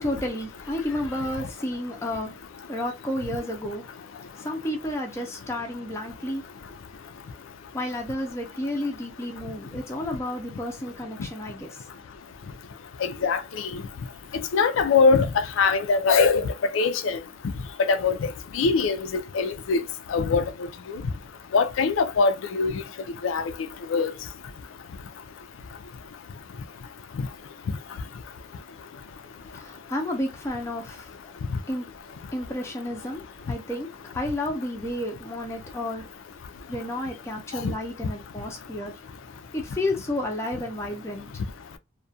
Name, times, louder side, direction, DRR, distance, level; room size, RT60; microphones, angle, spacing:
voice 1, 0.0-2.4 2.7-3.8 4.4-6.4 7.7-11.7 29.5-31.1 31.7-31.9 32.3-36.1 36.7-38.9 39.5-41.3, left 1 dB, 15° left, 0.4 m, -31 dB
voice 2, 13.0-13.8 14.5-16.5 16.7-17.2 17.9-18.2 18.5-19.8 20.1-20.4 21.5-22.7 23.2-23.4 23.9-24.1 37.6-37.7, left 4 dB, 90° left, 0.4 m, -22 dB
2.3 x 2.1 x 2.6 m
head